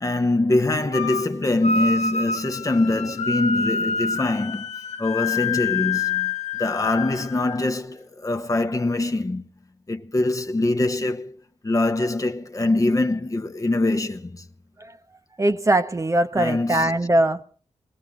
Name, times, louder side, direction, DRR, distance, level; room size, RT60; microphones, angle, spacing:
voice 1, 0.0-4.7 5.0-9.5 9.9-14.5 16.4-16.9, left 2 dB, 30° left, 1.0 m, -23 dB
sound 1, 0.9-1.3 1.6-7.7, left 4 dB, 75° left, 0.8 m, -27 dB
voice 2, 15.4-17.4, right 1 dB, 25° right, 0.9 m, -21 dB
21.0 x 17.5 x 3.8 m
cardioid pair, 60°, 12 cm